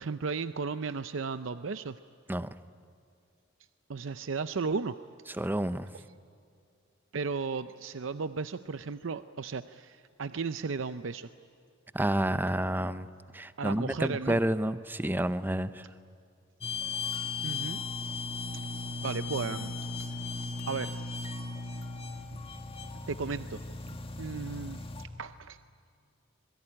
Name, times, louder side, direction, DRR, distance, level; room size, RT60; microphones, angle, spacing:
voice 1, 0.0-2.0 3.9-5.0 7.1-11.3 13.6-14.4 17.4-17.8 19.0-19.7 20.7-20.9 22.3-22.4 23.1-23.6 23.9-25.6, right 4 dB, 70° right, 11 dB, 0.6 m, -35 dB
voice 2, 5.3-5.9 11.9-15.9, right 1 dB, 10° right, 13 dB, 0.7 m, -30 dB
sound 1, 16.6-25.0, left 3 dB, 30° left, 1.8 m, -37 dB
26.0 x 22.0 x 10.0 m, 2.5 s
head